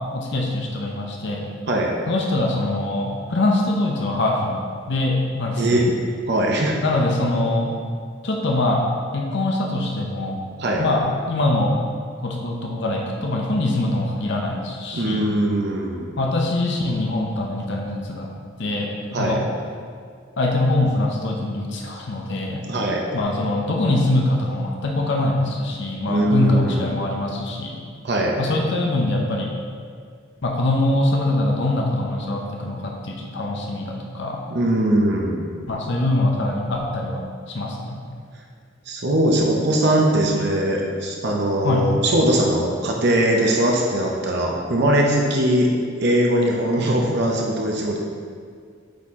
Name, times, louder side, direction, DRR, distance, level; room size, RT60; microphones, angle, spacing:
voice 1, 0.1-1.5 2.1-5.8 6.8-7.7 8.2-8.8 9.1-10.4 10.8-11.8 12.2-15.3 16.2-18.3 18.6-19.4 20.4-22.6 23.1-27.8 28.4-29.5 30.4-34.4 35.7-37.2 37.5-38.0 41.6-41.9, left 2 dB, 60° left, 0 dB, 0.8 m, -23 dB
voice 2, 6.3-6.8 10.6-10.8 14.9-16.1 19.1-19.4 22.7-23.0 26.1-27.0 28.0-28.4 34.5-35.5 38.9-45.7 46.0-48.0, right 1 dB, 55° right, -1 dB, 0.8 m, -20 dB
8.5 x 4.3 x 3.7 m, 2.1 s
head